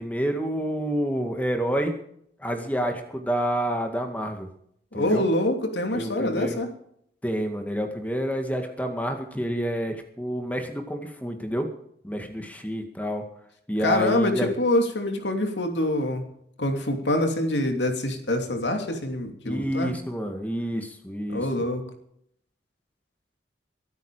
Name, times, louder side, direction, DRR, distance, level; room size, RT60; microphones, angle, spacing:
voice 1, 0.0-2.0 2.4-4.5 4.9-5.3 5.9-6.6 7.2-11.7 12.0-13.2 13.7-14.5 19.4-21.5, equal, 10° left, 5 dB, 2.0 m, -28 dB
voice 2, 4.9-6.7 13.8-16.2 16.6-19.9 21.3-21.8, left 1 dB, 75° left, 4 dB, 3.0 m, -25 dB
23.0 x 9.3 x 5.0 m, 0.69 s
head